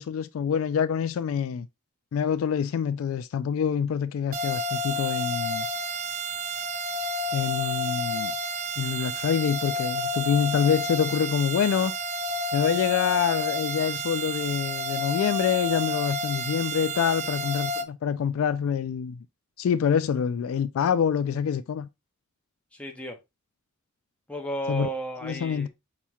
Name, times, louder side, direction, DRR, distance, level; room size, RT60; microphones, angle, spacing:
voice 1, 0.0-1.7 2.1-5.7 7.3-8.3 8.8-11.9 12.5-19.2 19.6-21.9 24.7-24.9 25.2-25.7, left 7 dB, 70° left, 0.3 m, -26 dB
sound 1, 4.3-17.8, equal, 40° right, 0.5 m, -30 dB
voice 2, 22.7-23.2 24.3-25.7, right 1 dB, 5° left, 0.7 m, -33 dB
5.5 x 3.0 x 2.3 m
head